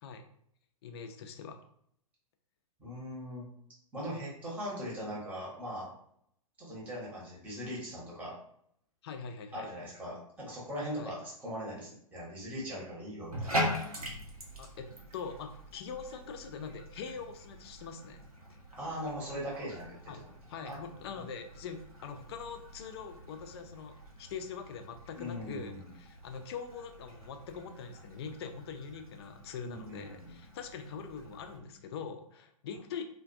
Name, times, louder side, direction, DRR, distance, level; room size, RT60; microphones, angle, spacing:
voice 1, 0.8-1.6 9.0-9.7 10.9-11.1 14.6-18.2 20.1-20.2 20.5-33.0, left 6 dB, 45° left, 6 dB, 0.4 m, -43 dB
voice 2, 2.8-3.5 3.9-5.9 6.6-8.4 9.5-13.5 18.7-20.1 20.5-20.9 25.2-25.9 29.6-30.3, equal, 10° right, -5 dB, 0.8 m, -40 dB
Bathtub (filling or washing), 13.2-31.6, equal, 90° right, 0.6 m, -43 dB
2.3 x 2.1 x 2.5 m, 0.68 s
figure-of-eight pair, 110°, 18 cm